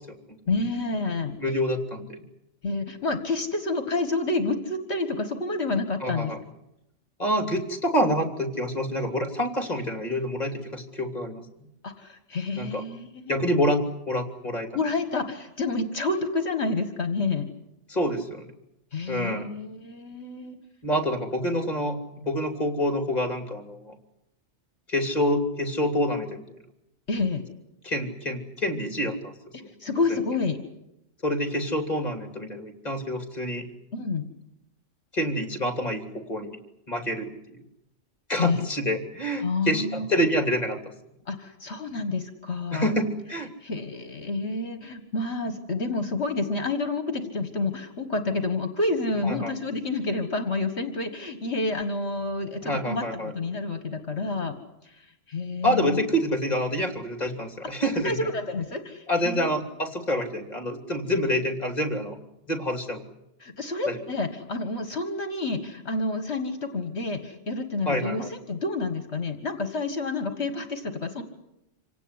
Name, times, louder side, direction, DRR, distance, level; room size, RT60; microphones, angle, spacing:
voice 1, 0.5-1.3 2.6-6.3 11.8-13.4 14.7-17.5 18.9-20.6 27.1-27.4 29.5-30.6 33.9-34.3 38.4-38.7 39.4-40.1 41.3-42.9 43.6-54.5 54.8-56.0 57.9-59.5 63.4-71.2, left 3 dB, 60° left, 8 dB, 2.0 m, -29 dB
voice 2, 1.4-2.2 6.0-6.4 7.2-11.4 12.6-12.8 13.3-13.8 14.1-14.7 17.9-18.5 19.1-19.5 20.8-22.0 22.2-23.9 24.9-26.4 27.8-29.3 29.6-29.7 31.2-33.7 35.1-36.6 36.9-37.3 38.3-40.8 42.7-43.5 49.2-49.5 52.6-53.3 55.6-58.2 59.1-62.2 62.5-63.0 63.8-64.0 67.8-68.3, equal, 35° left, 6 dB, 3.1 m, -27 dB
27.0 x 18.0 x 9.8 m, 0.87 s
omnidirectional pair, 1.3 m